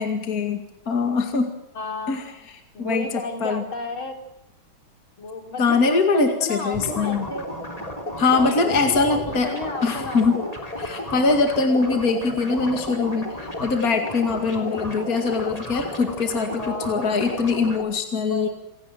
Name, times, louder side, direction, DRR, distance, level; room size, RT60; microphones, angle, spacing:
voice 1, 0.0-1.5 2.1-3.6 5.6-7.3 8.2-9.5 9.8-10.4 10.8-18.5, left 4 dB, 45° left, 5 dB, 2.6 m, -23 dB
voice 2, 1.7-2.2 2.7-4.1 5.2-7.5 8.3-8.5 8.8-10.5 16.6-17.1 18.3-18.5, left 3 dB, 75° left, 3 dB, 5.0 m, -32 dB
sound 1, 6.7-17.8, left 1 dB, 15° left, 3.4 m, -33 dB
27.5 x 17.5 x 7.6 m, 0.88 s
omnidirectional pair, 2.3 m